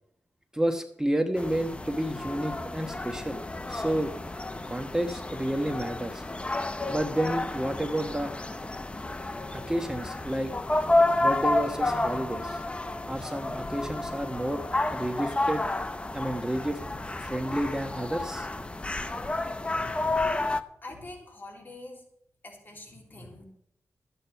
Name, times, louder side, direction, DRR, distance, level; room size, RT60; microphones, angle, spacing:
voice 1, 0.5-3.4 3.7-4.1 4.7-6.2 6.9-8.3 9.5-10.5 11.2-12.6 13.1-14.6 14.9-15.6 16.1-16.8 17.2-18.5, right 1 dB, 10° right, 6 dB, 1.1 m, -30 dB
sound 1, 1.4-20.6, left 2 dB, 20° left, 0.8 m, -30 dB
voice 2, 19.7-20.3 20.8-22.0 22.4-23.4, left 2 dB, 35° left, 1 dB, 3.2 m, -45 dB
13.5 x 9.0 x 5.7 m, 0.73 s
wide cardioid pair, 105°, 5 cm